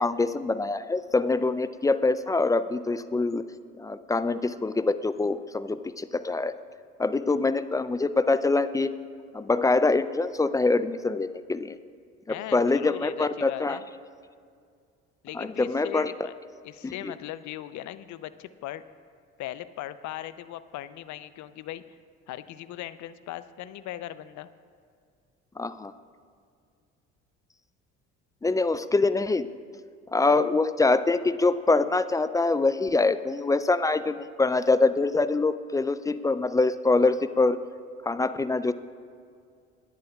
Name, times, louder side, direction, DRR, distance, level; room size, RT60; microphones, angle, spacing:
voice 1, 0.0-3.4 3.8-6.5 7.0-8.9 9.3-11.8 12.3-13.8 15.3-16.1 16.8-17.1 25.6-25.9 28.4-29.5 30.1-37.6 38.1-38.7, left 3 dB, 10° left, 13 dB, 0.3 m, -24 dB
voice 2, 12.3-13.8 15.2-16.3 16.6-18.8 19.4-21.8 22.3-24.5, left 13 dB, 55° left, 14 dB, 0.6 m, -39 dB
21.5 x 10.5 x 2.3 m, 2.2 s
hypercardioid pair, 60°, 35 cm